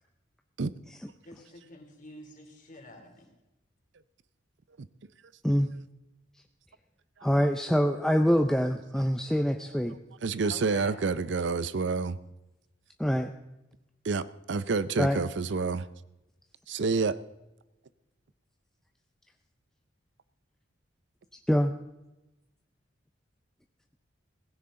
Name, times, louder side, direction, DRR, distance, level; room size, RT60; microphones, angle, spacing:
voice 1, 1.2-3.3 10.4-10.9, left 2 dB, 40° left, 2 dB, 3.0 m, -47 dB
voice 2, 7.2-10.0 13.0-13.3 15.0-15.2 21.5-21.7, equal, 5° left, 5 dB, 0.5 m, -25 dB
voice 3, 10.2-12.2 14.0-15.9 16.7-17.2, right 4 dB, 60° right, 15 dB, 0.5 m, -28 dB
17.0 x 15.5 x 3.7 m, 0.96 s
head